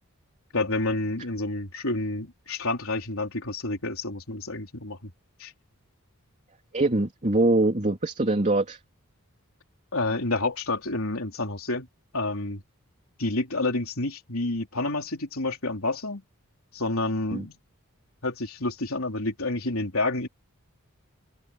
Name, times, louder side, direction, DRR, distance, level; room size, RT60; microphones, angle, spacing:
voice 1, 0.5-5.1 5.4-5.5 9.9-11.9 12.1-12.6 13.2-16.2 16.7-17.6 18.2-20.3, left 2 dB, 70° left, 4.0 m, -29 dB
voice 2, 6.7-8.8 17.3-17.4, right 2 dB, 35° right, 3.2 m, -23 dB
open air
head